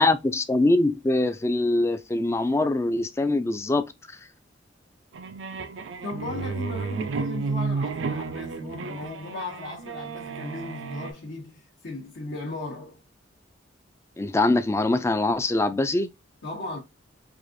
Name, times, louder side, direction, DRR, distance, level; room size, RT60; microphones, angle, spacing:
voice 1, 0.0-4.2 14.2-16.1, left 2 dB, 15° left, 0.3 m, -23 dB
sound 1, 5.1-11.1, right 4 dB, 75° right, 0.4 m, -32 dB
voice 2, 6.0-13.0 16.4-16.8, left 2 dB, 65° left, 0.9 m, -36 dB
4.7 x 2.5 x 2.6 m
head